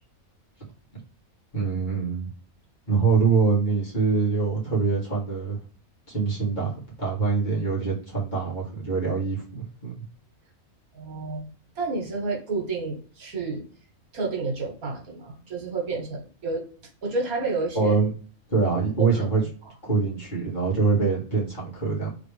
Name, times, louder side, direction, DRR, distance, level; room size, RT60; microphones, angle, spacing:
voice 1, 1.5-2.3 2.9-5.6 6.1-10.0 17.7-18.1 18.5-19.4 19.8-22.1, right 4 dB, 30° left, -6 dB, 2.0 m, -24 dB
voice 2, 10.9-11.5 11.7-13.6 14.1-16.7 17.0-17.9 19.0-19.2, right 3 dB, 75° right, 0 dB, 1.8 m, -30 dB
3.9 x 3.3 x 3.3 m, 0.42 s
omnidirectional pair, 1.5 m